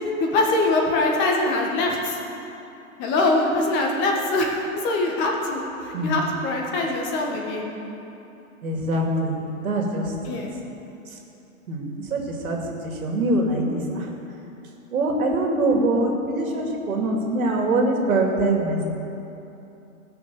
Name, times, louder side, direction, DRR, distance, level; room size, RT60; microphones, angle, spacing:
voice 1, 0.2-2.2 3.0-7.7 10.2-10.5, left 2 dB, 25° left, 0 dB, 1.6 m, -23 dB
voice 2, 8.6-10.4 11.7-12.6 12.8-14.1 14.9-18.8, right 2 dB, 75° right, 1 dB, 2.6 m, -23 dB
16.5 x 6.6 x 7.0 m, 2.9 s
hypercardioid pair, 145°, 42 cm